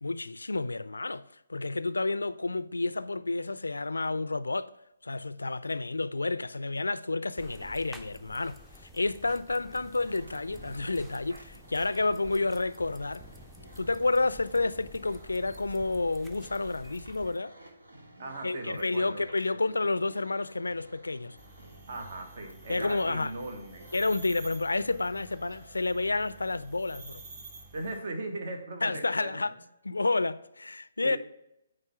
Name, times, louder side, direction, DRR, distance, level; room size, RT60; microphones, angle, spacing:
voice 1, 0.0-4.7 5.0-13.3 13.8-17.5 18.4-21.4 22.7-23.3 23.9-27.2 28.8-29.5 29.8-31.2, left 3 dB, 80° left, 0.3 m, -30 dB
sound 1, 7.4-17.4, left 1 dB, 5° right, 0.5 m, -51 dB
sound 2, 9.8-24.6, right 1 dB, 80° right, 1.5 m, -54 dB
voice 2, 18.2-19.2 19.5-19.6 21.9-23.9 27.7-29.4 31.0-31.2, right 2 dB, 55° right, 1.2 m, -38 dB
sound 3, 21.4-28.0, right 3 dB, 30° right, 0.9 m, -50 dB
8.9 x 3.3 x 5.7 m
figure-of-eight pair, 135°, 0 cm